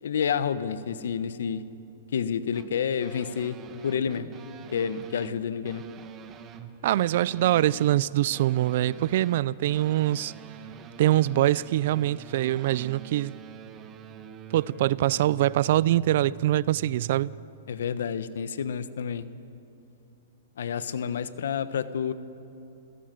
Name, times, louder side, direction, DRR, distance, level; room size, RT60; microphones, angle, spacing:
voice 1, 0.0-1.6 2.1-3.6 3.8-4.3 4.7-5.8 17.7-19.2 20.6-22.1, left 7 dB, 75° left, 1.2 m, -29 dB
sound 1, 2.5-17.4, right 8 dB, 25° right, 1.4 m, -46 dB
voice 2, 6.8-10.3 11.0-13.4 14.5-17.3, right 14 dB, 60° right, 0.5 m, -24 dB
29.5 x 16.0 x 7.8 m
hypercardioid pair, 135°, 0 cm